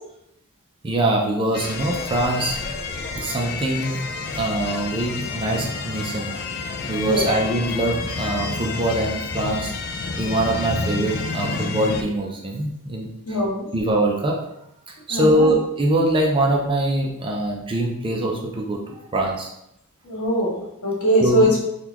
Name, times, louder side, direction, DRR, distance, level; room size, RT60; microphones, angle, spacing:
voice 1, 0.8-2.6 3.2-4.0 4.3-6.3 6.9-9.7 10.2-13.4 13.7-14.4 14.9-19.5 21.2-21.5, right 1 dB, 25° right, 0 dB, 0.5 m, -23 dB
sound 1, 1.5-12.0, left 4 dB, 45° left, 0.3 m, -29 dB
voice 2, 13.3-13.7 15.1-15.5 20.0-21.6, equal, 75° left, -3 dB, 1.2 m, -21 dB
3.7 x 2.3 x 2.9 m, 0.81 s
head